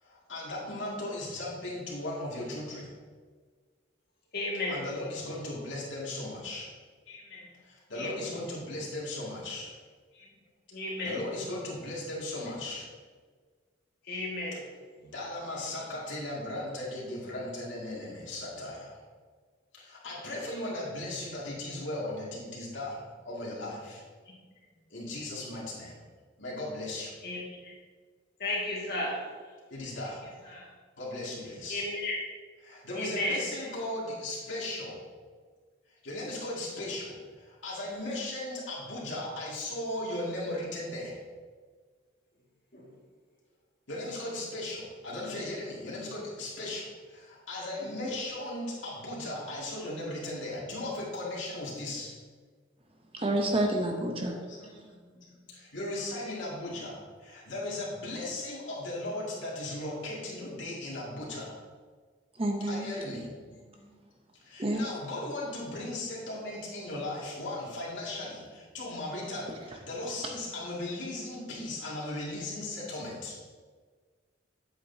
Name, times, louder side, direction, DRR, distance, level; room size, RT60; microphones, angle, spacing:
voice 1, 0.0-2.9 4.5-6.7 7.1-9.7 10.1-10.3 10.8-12.9 14.5-14.6 15.0-19.0 19.7-24.0 24.9-26.0 26.4-27.1 29.7-31.9 32.6-35.0 36.0-41.2 43.9-52.1 54.3-61.5 62.6-64.0 64.4-73.4, left 1 dB, 75° left, -5 dB, 2.3 m, -37 dB
voice 2, 4.3-4.8 7.9-8.1 10.7-11.2 14.1-14.6 27.2-27.4 28.4-29.2 31.7-32.2 33.0-33.4 42.7-42.8, left 2 dB, 55° left, -3 dB, 2.0 m, -32 dB
voice 3, 53.1-54.3 62.4-62.9 64.6-64.8, right 1 dB, 30° right, 2 dB, 0.7 m, -28 dB
8.4 x 7.9 x 2.8 m, 1.5 s
head